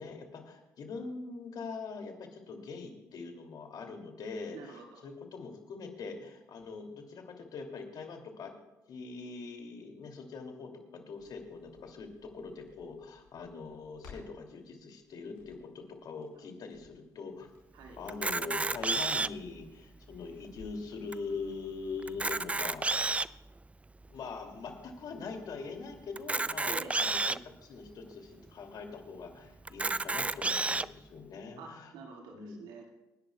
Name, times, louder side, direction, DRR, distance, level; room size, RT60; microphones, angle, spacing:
voice 1, 0.0-8.5 8.9-17.5 18.0-23.4 24.1-31.9 32.3-32.6, left 4 dB, 60° left, 3 dB, 2.6 m, -43 dB
voice 2, 4.5-5.0 17.7-18.0 26.7-27.0 29.4-29.5 31.6-33.0, right 4 dB, 75° right, 1 dB, 2.1 m, -47 dB
Crackle, 11.2-21.0 21.3-21.4, left 5 dB, 90° left, 4.8 m, -60 dB
Camera, 18.1-19.5 20.1-20.2 20.4-20.6 21.1-21.2 22.0-23.4 24.0-24.1 26.2-27.4 28.1-28.2 28.5-28.6 29.7-30.9, right 3 dB, 15° right, 0.4 m, -30 dB
28.5 x 10.5 x 2.3 m, 1.0 s
hypercardioid pair, 60°, 8 cm